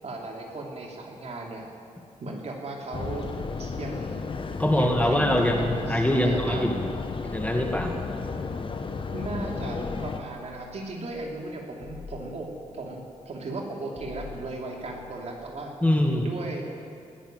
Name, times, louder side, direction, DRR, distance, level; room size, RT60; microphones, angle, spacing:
voice 1, 0.0-1.7 2.2-3.3 3.6-4.2 4.7-6.6 9.1-15.7 16.2-16.6, right 2 dB, 60° right, 0 dB, 2.7 m, -36 dB
sound 1, 2.9-10.2, left 4 dB, 40° left, 1.1 m, -33 dB
voice 2, 4.6-6.9 7.3-7.9 15.8-16.3, left 1 dB, 10° left, 2 dB, 1.8 m, -23 dB
sound 2, 9.6-11.3 11.8-13.2 13.9-15.5, left 5 dB, 65° left, 3.3 m, -46 dB
19.5 x 7.2 x 9.1 m, 2.5 s
cardioid pair, 80°, 13 cm